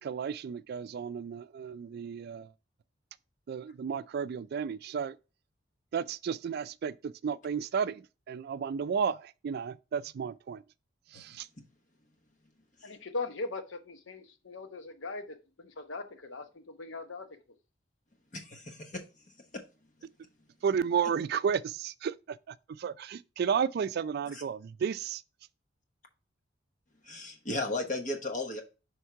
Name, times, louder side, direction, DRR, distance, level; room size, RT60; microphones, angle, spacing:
voice 1, 0.0-2.5 3.5-5.2 5.9-10.6 11.1-11.5 20.6-25.2, right 7 dB, 55° right, 0.3 m, -33 dB
voice 2, 12.8-17.3, left 3 dB, 75° left, 0.9 m, -40 dB
voice 3, 18.3-19.0 19.5-19.6 24.3-24.4 27.0-28.6, left 2 dB, 40° left, 1.2 m, -35 dB
5.8 x 3.6 x 4.6 m
head